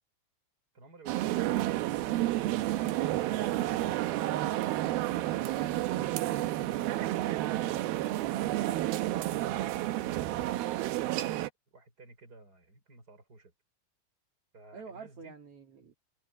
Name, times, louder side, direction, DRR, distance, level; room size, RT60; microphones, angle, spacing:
voice 1, 0.7-1.5 11.7-13.5 14.5-15.3, right 2 dB, 20° right, 5.2 m, -55 dB
sound 1, 1.1-11.5, right 15 dB, 90° right, 2.1 m, -30 dB
voice 2, 3.0-3.3 14.7-15.9, right 5 dB, 40° right, 2.4 m, -47 dB
omnidirectional pair, 5.7 m